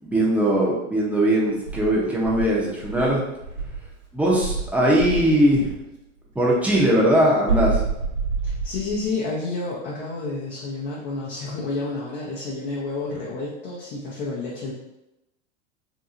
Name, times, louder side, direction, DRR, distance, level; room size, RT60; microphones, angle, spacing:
voice 1, 0.0-3.2 4.1-5.7 6.3-7.8, right 1 dB, 5° right, -4 dB, 0.6 m, -20 dB
Insect, 1.6-3.9 4.4-5.8 7.5-9.1, right 4 dB, 80° right, 1.0 m, -28 dB
voice 2, 8.4-14.7, left 3 dB, 50° left, -5 dB, 0.8 m, -30 dB
2.7 x 2.6 x 2.4 m, 0.90 s
hypercardioid pair, 100°, 37 cm